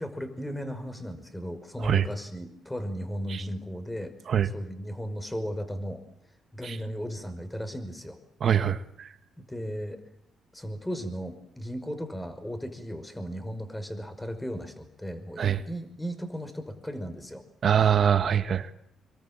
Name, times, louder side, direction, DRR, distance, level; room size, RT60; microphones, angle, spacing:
voice 1, 0.0-4.1 4.4-6.0 6.5-8.2 9.5-10.0 10.5-17.4, equal, 10° left, 9 dB, 5.6 m, -36 dB
voice 2, 8.4-9.1 15.4-15.6 17.6-18.7, right 8 dB, 55° right, 10 dB, 1.8 m, -23 dB
27.0 x 23.0 x 9.0 m, 0.72 s
cardioid pair, 90°, 0 cm